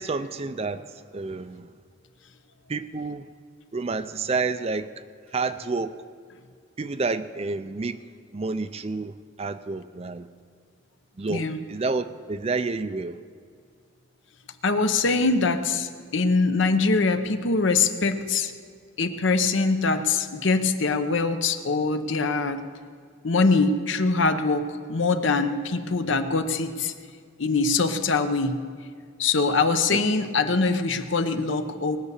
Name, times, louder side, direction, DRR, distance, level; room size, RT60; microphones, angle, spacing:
voice 1, 0.0-1.7 2.7-3.3 3.7-4.9 5.3-5.9 6.8-8.0 8.3-10.3 11.2-13.2 29.9-30.0, right 3 dB, 30° right, 12 dB, 0.4 m, -29 dB
voice 2, 14.6-18.5 19.0-22.6 23.2-24.6 24.9-26.9 27.4-28.6 29.2-32.0, left 3 dB, 65° left, 9 dB, 0.9 m, -23 dB
19.5 x 6.7 x 8.3 m, 2.1 s
head